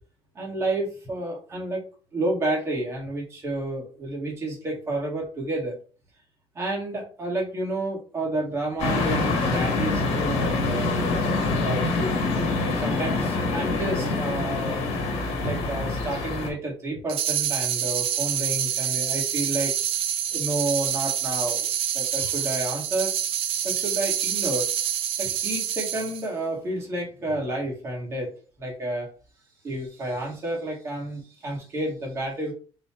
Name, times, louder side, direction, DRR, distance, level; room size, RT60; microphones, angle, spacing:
voice 1, 0.3-1.8 2.1-5.8 6.5-12.2 12.7-14.8 15.4-19.7 20.3-21.7 21.9-23.1 23.6-24.7 25.2-28.3 28.6-29.1 29.6-32.5, right 1 dB, 25° right, -2 dB, 1.4 m, -30 dB
sound 1, 8.8-16.5, left 3 dB, 85° left, 1.1 m, -25 dB
sound 2, 17.1-26.3, right 10 dB, 65° right, 0.4 m, -27 dB
4.0 x 2.3 x 4.3 m, 0.38 s
cardioid pair, 165°, 10 cm